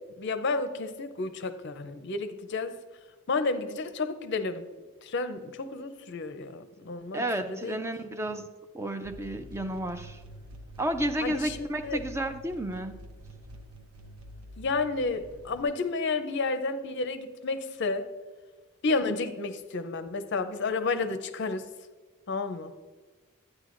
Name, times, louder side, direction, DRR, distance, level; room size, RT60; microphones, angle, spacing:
voice 1, 0.2-2.8 3.3-4.7 5.0-7.8 11.2-11.6 11.8-12.0 14.6-18.1 18.8-21.7 22.3-22.7, left 3 dB, 55° left, 9 dB, 0.5 m, -31 dB
voice 2, 7.1-8.5 8.7-10.2 10.8-13.0, right 1 dB, 10° right, 7 dB, 0.4 m, -31 dB
sound 1, 9.0-15.6, equal, 75° right, 0.9 m, -47 dB
11.0 x 9.7 x 2.5 m, 1.3 s
head